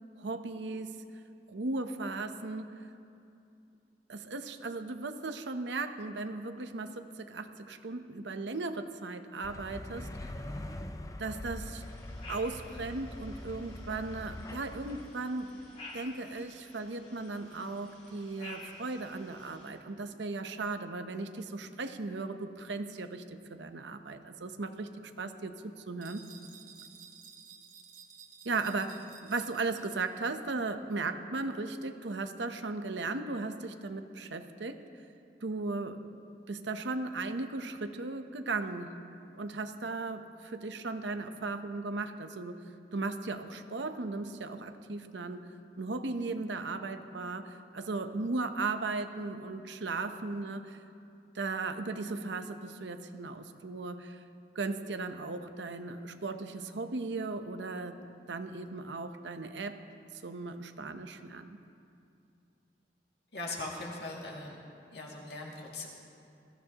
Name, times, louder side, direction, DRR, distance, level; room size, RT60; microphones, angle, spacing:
voice 1, 0.2-1.0 1.5-2.8 4.1-10.4 11.2-11.8 12.3-15.7 15.9-24.9 25.2-26.2 28.4-34.8 35.4-36.0 36.5-38.9 39.3-42.6 42.9-45.5 45.8-50.8 51.3-54.2 54.5-58.0 58.3-59.8 60.2-61.6, right 3 dB, 90° right, 8 dB, 0.8 m, -37 dB
sound 1, 9.4-15.1, left 1 dB, 20° left, 0.4 m, -43 dB
sound 2, 11.8-19.7, left 2 dB, 40° left, 3.3 m, -52 dB
sound 3, 26.0-30.1, right 7 dB, 50° right, 1.2 m, -54 dB
voice 2, 63.3-64.6 64.9-65.9, left 2 dB, 70° left, -2 dB, 2.3 m, -40 dB
21.0 x 15.0 x 2.9 m, 2.6 s
head